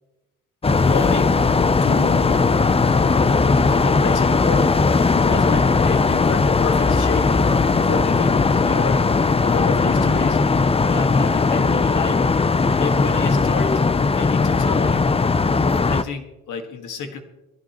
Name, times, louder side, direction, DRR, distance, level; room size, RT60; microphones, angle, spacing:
sound 1, 0.6-16.0, left 4 dB, 20° left, 0.6 m, -18 dB
voice 1, 0.8-1.4 1.8-2.5 3.6-4.8 5.1-7.4 7.8-10.4 10.9-12.3 12.8-13.8 14.1-15.1 15.9-17.2, left 5 dB, 85° left, 7 dB, 1.9 m, -30 dB
20.0 x 16.0 x 3.1 m, 1.0 s
cardioid pair, 90°, 30 cm